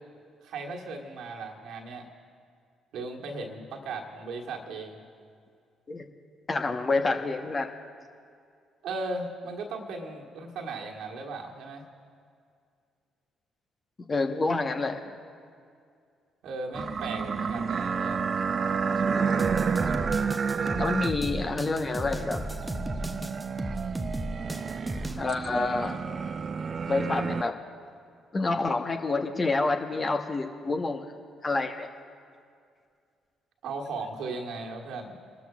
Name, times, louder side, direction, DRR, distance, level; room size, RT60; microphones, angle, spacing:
voice 1, 0.4-2.1 2.9-5.0 8.8-11.9 16.4-18.2 33.6-35.1, right 3 dB, 65° right, 1 dB, 1.5 m, -37 dB
voice 2, 6.5-7.7 14.1-15.0 20.8-22.4 25.2-26.0 26.9-27.5 28.3-31.0 31.4-31.9, left 3 dB, 35° left, 5 dB, 1.1 m, -28 dB
sound 1, 16.7-27.4, right 5 dB, 45° right, 0.5 m, -30 dB
sound 2, 19.4-25.2, right 1 dB, 10° right, 0.9 m, -35 dB
29.0 x 13.0 x 2.4 m, 2.3 s
hypercardioid pair, 45°, 0 cm